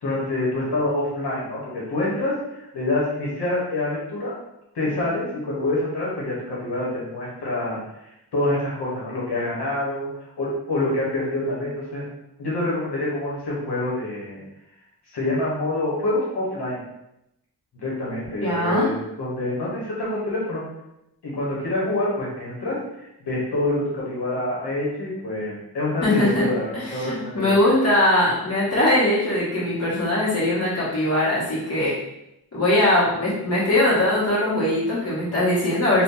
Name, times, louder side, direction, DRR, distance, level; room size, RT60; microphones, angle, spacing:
voice 1, 0.0-4.3 4.7-8.0 8.3-10.1 10.4-12.0 12.4-14.4 15.1-16.8 17.7-20.6 21.2-27.6, left 2 dB, 85° left, -6 dB, 1.3 m, -26 dB
voice 2, 18.4-18.9 26.0-26.5 26.7-32.0 32.5-36.0, left 1 dB, 40° left, -9 dB, 1.4 m, -21 dB
2.8 x 2.5 x 3.8 m, 0.86 s
wide cardioid pair, 145°, 39 cm